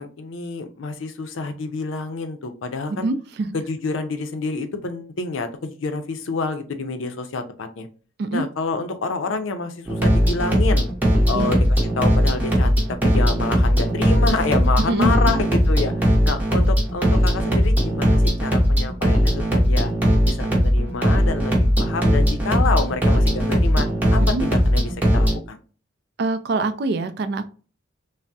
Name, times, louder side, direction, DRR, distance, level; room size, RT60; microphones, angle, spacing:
voice 1, 0.0-3.1 3.5-7.9 8.3-10.9 11.3-19.9 20.2-25.6, left 3 dB, 75° left, 7 dB, 0.5 m, -28 dB
voice 2, 2.9-3.5 8.2-8.4 11.3-11.6 14.8-15.3 24.2-24.5 26.2-27.5, right 2 dB, 55° right, 10 dB, 0.3 m, -24 dB
sound 1, 9.9-25.4, equal, 10° right, 0.7 m, -18 dB
3.4 x 2.0 x 2.6 m, 0.37 s
head